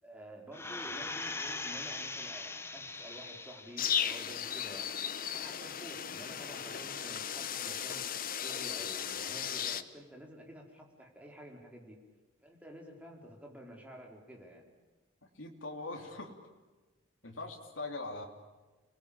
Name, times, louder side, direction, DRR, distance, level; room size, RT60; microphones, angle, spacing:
voice 1, 0.0-4.9 5.3-8.0 8.3-12.0 12.4-14.7, equal, 5° right, -1 dB, 4.5 m, -50 dB
sound 1, 0.5-3.9 4.4-4.5, left 3 dB, 15° left, 1.1 m, -40 dB
sound 2, 3.8-9.8, left 8 dB, 45° left, 1.1 m, -36 dB
voice 2, 15.3-16.4 17.2-18.3, left 2 dB, 75° left, 2 dB, 3.3 m, -41 dB
29.5 x 20.5 x 8.8 m, 1.2 s
head